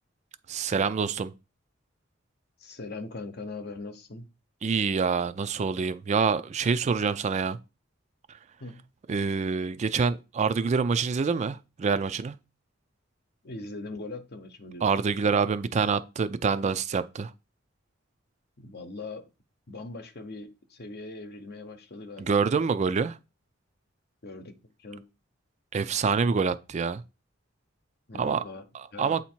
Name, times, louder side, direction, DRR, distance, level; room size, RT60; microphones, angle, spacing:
voice 1, 0.5-1.3 4.6-7.6 9.1-12.4 14.8-17.3 22.2-23.2 25.7-27.0 28.2-28.4 28.7-29.2, right 5 dB, 35° right, 0.3 m, -26 dB
voice 2, 2.6-4.3 8.6-8.9 13.4-14.9 18.6-19.3 19.7-22.7 24.2-25.0 28.1-28.6 28.9-29.2, left 3 dB, 55° left, 0.8 m, -41 dB
8.1 x 2.8 x 4.4 m
head